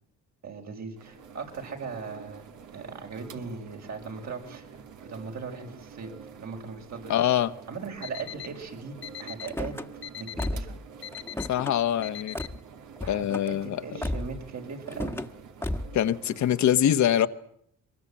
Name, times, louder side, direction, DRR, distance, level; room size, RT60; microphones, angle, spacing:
voice 1, 0.4-2.5 2.7-4.7 5.0-6.1 6.4-7.3 7.7-9.8 10.2-10.7 13.0-15.2, right 5 dB, 65° right, 5.9 m, -39 dB
sound 1, 1.0-16.6, right 6 dB, 80° right, 2.4 m, -48 dB
voice 2, 7.1-7.5 11.5-12.4 13.1-13.8 15.9-17.3, left 11 dB, 70° left, 1.3 m, -24 dB
Alarm, 8.0-8.5 9.0-9.5 10.0-10.5 11.0-11.5 12.0-12.5, left 10 dB, 40° left, 1.4 m, -39 dB
Car / Slam, 9.4-9.9 10.4-10.8 11.1-11.8 12.4-12.6 13.0-13.5 14.0-14.4 14.9-15.3 15.6-16.0, left 1 dB, 10° left, 1.4 m, -33 dB
23.0 x 21.0 x 8.8 m
cardioid pair, 90°, 30 cm